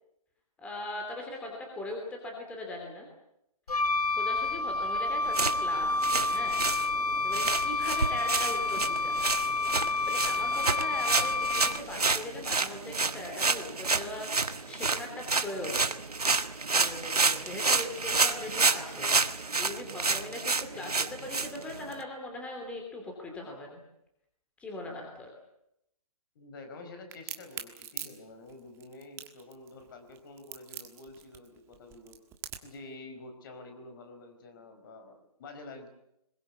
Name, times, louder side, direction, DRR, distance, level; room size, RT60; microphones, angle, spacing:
voice 1, 0.6-3.1 4.1-6.6 7.2-9.4 10.1-23.8 24.6-25.3, left 2 dB, 5° left, 1 dB, 3.0 m, -40 dB
Wind instrument woodwind instrument, 3.7-12.0, left 3 dB, 85° left, 1.1 m, -29 dB
sound 1, 5.2-22.0, right 4 dB, 90° right, 1.6 m, -30 dB
voice 2, 26.3-32.2 32.6-35.9, left 2 dB, 35° left, 7 dB, 4.6 m, -48 dB
Crack, 27.1-32.8, right 11 dB, 15° right, 1.5 m, -42 dB
22.0 x 21.5 x 8.4 m, 0.79 s
hypercardioid pair, 155°, 19 cm